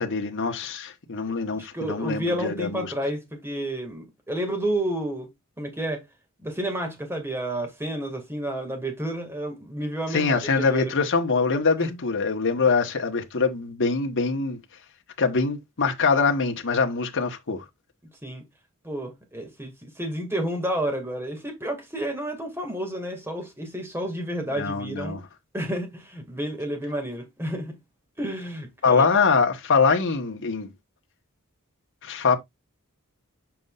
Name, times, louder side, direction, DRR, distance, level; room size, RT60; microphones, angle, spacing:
voice 1, 0.0-2.9 10.1-14.6 15.2-17.6 24.6-25.2 28.8-30.7 32.0-32.4, left 4 dB, 60° left, 1.3 m, -23 dB
voice 2, 1.6-5.3 5.6-6.0 6.4-10.8 11.8-12.0 18.2-18.4 18.8-25.2 25.5-27.7 28.2-29.1, right 1 dB, 10° right, 2.1 m, -30 dB
7.3 x 5.4 x 2.4 m
head